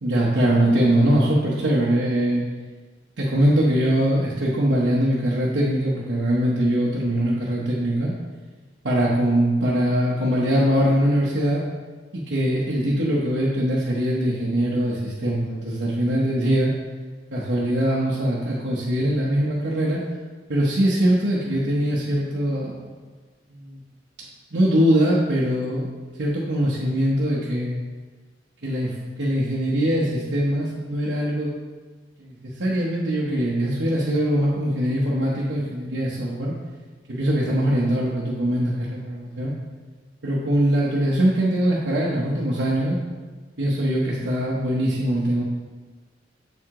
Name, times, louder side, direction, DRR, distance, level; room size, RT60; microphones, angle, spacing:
voice 1, 0.0-2.4 3.2-8.1 8.8-11.6 12.1-16.7 17.3-20.0 20.5-22.8 23.5-23.8 24.5-25.9 26.2-27.8 28.6-31.5 32.2-36.5 37.1-39.5 40.2-43.0 43.6-45.4, equal, 85° right, -6 dB, 1.0 m, -22 dB
7.1 x 4.7 x 3.7 m, 1.4 s
head